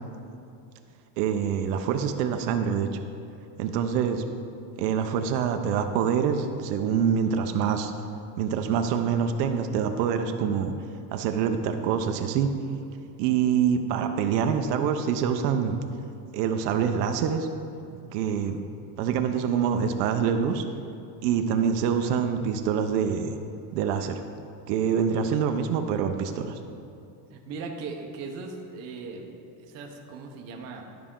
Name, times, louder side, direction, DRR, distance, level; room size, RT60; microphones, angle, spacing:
voice 1, 1.2-2.9 3.6-4.2 4.8-7.9 8.4-10.7 11.1-12.5 13.2-15.8 16.3-17.5 18.1-18.6 19.0-20.6 21.2-23.4 23.7-24.2 24.7-26.6, right 7 dB, 80° right, 6 dB, 0.8 m, -25 dB
voice 2, 27.3-30.8, right 4 dB, 35° right, 2 dB, 0.8 m, -38 dB
12.0 x 5.8 x 3.7 m, 2.6 s
cardioid pair, 175°, 46 cm